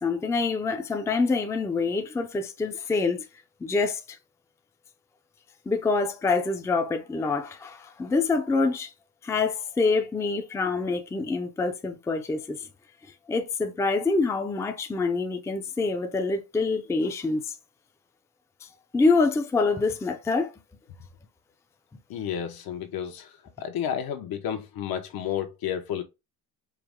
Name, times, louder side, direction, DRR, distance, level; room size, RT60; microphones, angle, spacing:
voice 1, 0.0-3.2 3.6-4.2 5.7-8.9 9.2-12.7 13.3-17.5 18.9-20.5, left 3 dB, 10° left, 0.4 m, -26 dB
voice 2, 22.1-23.3 23.6-26.0, left 9 dB, 75° left, 1.0 m, -31 dB
4.7 x 2.1 x 3.5 m
cardioid pair, 145°, 37 cm